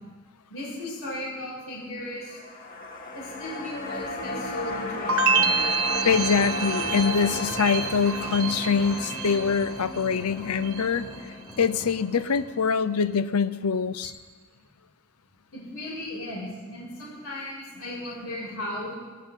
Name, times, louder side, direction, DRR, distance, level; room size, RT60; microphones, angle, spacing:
voice 1, 0.5-2.4 3.1-5.5 15.5-18.9, left 1 dB, 70° left, -5 dB, 6.3 m, -36 dB
sound 1, 2.2-12.6 12.9-13.0, left 2 dB, 40° left, 2.3 m, -35 dB
sound 2, 5.1-10.1 10.4-11.1, right 5 dB, 70° right, 1.1 m, -28 dB
voice 2, 6.0-14.1, left 5 dB, 90° left, 14 dB, 0.7 m, -24 dB
sound 3, 6.0-13.1 14.0-14.1, left 1 dB, 20° left, 2.1 m, -43 dB
18.5 x 18.0 x 3.8 m, 1.3 s
head